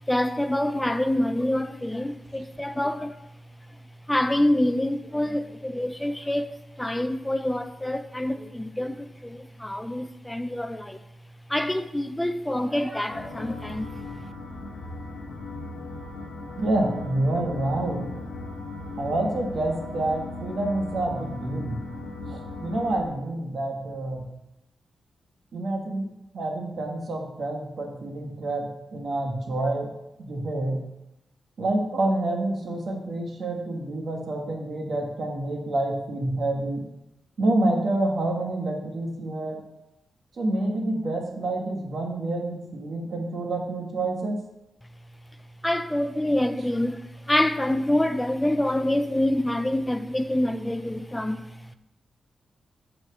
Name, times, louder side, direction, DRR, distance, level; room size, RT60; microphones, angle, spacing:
voice 1, 0.1-3.2 4.1-11.0 11.5-13.9 45.6-51.7, left 1 dB, 15° left, 0.4 m, -26 dB
sound 1, 13.1-23.1, left 2 dB, 85° left, 1.0 m, -37 dB
voice 2, 16.6-18.0 19.0-21.8 22.3-24.2 25.5-29.9 30.2-30.8 31.6-36.8 37.4-39.6 40.3-44.4, right 2 dB, 65° right, 1.4 m, -28 dB
5.3 x 4.4 x 6.0 m
cardioid pair, 60°, 0 cm